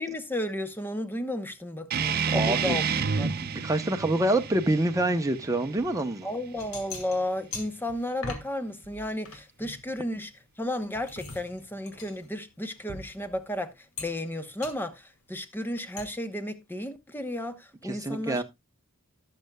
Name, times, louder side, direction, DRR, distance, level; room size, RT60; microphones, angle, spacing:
voice 1, 0.0-3.3 6.2-10.3 10.6-18.4, left 1 dB, 10° left, 0.9 m, -33 dB
sound 1, 1.9-7.0, right 5 dB, 45° right, 0.6 m, -30 dB
voice 2, 2.3-2.8 3.4-6.3 17.8-18.4, right 1 dB, 15° right, 0.8 m, -26 dB
sound 2, 5.8-5.9 6.4-8.5 8.8-10.4 10.8-13.5 14.0-14.3 14.6-14.8 16.0-16.1, left 3 dB, 75° left, 2.3 m, -42 dB
18.0 x 6.7 x 2.3 m
head